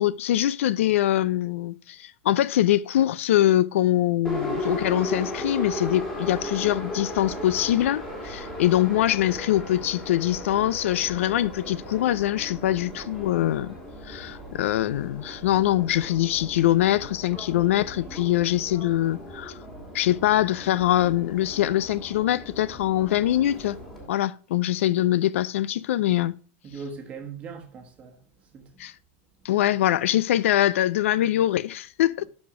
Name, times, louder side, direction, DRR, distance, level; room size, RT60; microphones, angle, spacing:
voice 1, 0.0-13.8 14.0-19.6 19.9-23.8 24.1-26.4 28.8-28.9 29.4-32.3, left 13 dB, 75° left, 0.5 m, -23 dB
Subway metro underground, 4.2-24.1, equal, 5° left, 1.8 m, -37 dB
voice 2, 26.6-28.2 28.5-28.8, right 5 dB, 20° right, 1.2 m, -40 dB
11.5 x 4.3 x 4.9 m
supercardioid pair, 180°, 7 cm